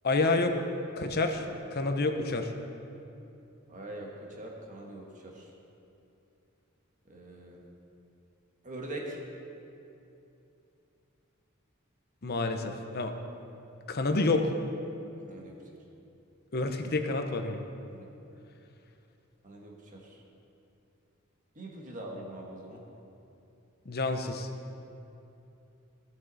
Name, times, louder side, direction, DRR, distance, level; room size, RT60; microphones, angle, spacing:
voice 1, 0.0-0.6 1.0-2.5 12.2-13.1 13.9-14.5 16.5-17.6 23.9-24.5, left 3 dB, 50° left, 6 dB, 0.8 m, -28 dB
voice 2, 3.7-5.5 7.1-7.6 8.6-9.2 15.3-15.6 17.9-18.1 19.4-20.2 21.5-22.8, right 1 dB, 40° right, -1 dB, 1.4 m, -43 dB
17.0 x 6.3 x 4.0 m, 2.8 s
head